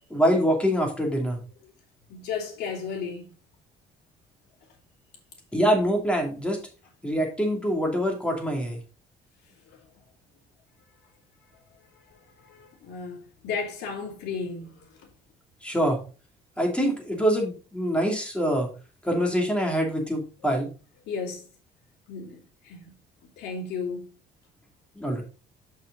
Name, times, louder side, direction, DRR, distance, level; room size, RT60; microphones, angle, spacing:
voice 1, 0.1-1.4 5.5-6.6 7.0-8.8 15.6-16.0 16.6-18.7 19.0-20.7 25.0-25.2, equal, 5° left, 2.6 m, -24 dB
voice 2, 2.1-3.3 9.7-9.8 11.9-15.1 21.1-21.5 22.1-22.9 23.4-24.1, left 5 dB, 80° left, 2.8 m, -35 dB
6.8 x 6.0 x 3.9 m
cardioid pair, 110°, 17 cm